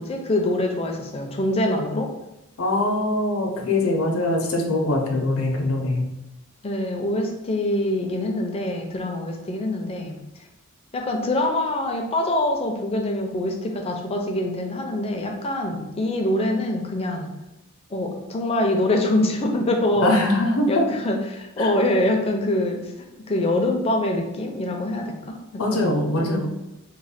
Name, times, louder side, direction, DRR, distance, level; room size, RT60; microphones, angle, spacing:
voice 1, 0.0-2.1 6.6-10.2 10.9-17.3 17.9-20.2 20.7-22.9 23.3-25.9 26.2-26.4, left 1 dB, 25° left, 2 dB, 0.4 m, -24 dB
voice 2, 2.6-6.1 20.0-20.8 21.6-21.7 25.6-26.5, left 1 dB, 75° left, 2 dB, 0.6 m, -22 dB
3.0 x 2.1 x 4.2 m, 0.93 s
head